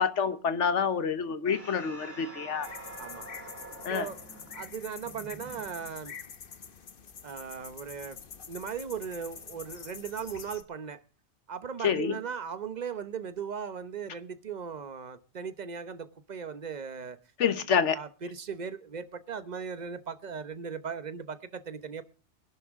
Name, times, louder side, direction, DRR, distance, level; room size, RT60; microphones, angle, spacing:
voice 1, 0.0-2.7 3.8-4.1 11.8-12.2 17.4-18.0, left 6 dB, 80° left, 1.3 m, -27 dB
sound 1, 1.5-6.2, right 2 dB, 10° right, 2.9 m, -47 dB
sound 2, 2.6-10.6, left 6 dB, 50° left, 1.1 m, -46 dB
voice 2, 3.9-4.2 4.5-6.1 7.2-8.2 8.5-11.0 11.5-17.2 17.8-22.0, right 6 dB, 40° right, 1.0 m, -38 dB
21.0 x 11.5 x 3.7 m
omnidirectional pair, 1.2 m